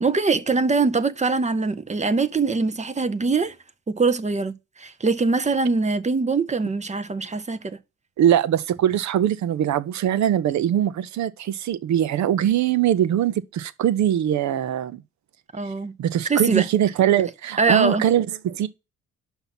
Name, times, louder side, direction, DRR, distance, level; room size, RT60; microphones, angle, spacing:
voice 1, 0.0-3.6 3.9-7.8 15.5-15.9 16.3-16.7 17.6-18.1, right 4 dB, 25° right, 0.7 m, -22 dB
voice 2, 8.2-15.0 16.0-18.7, right 10 dB, 70° right, 0.8 m, -22 dB
5.8 x 5.6 x 5.8 m
cardioid pair, 90°, 30 cm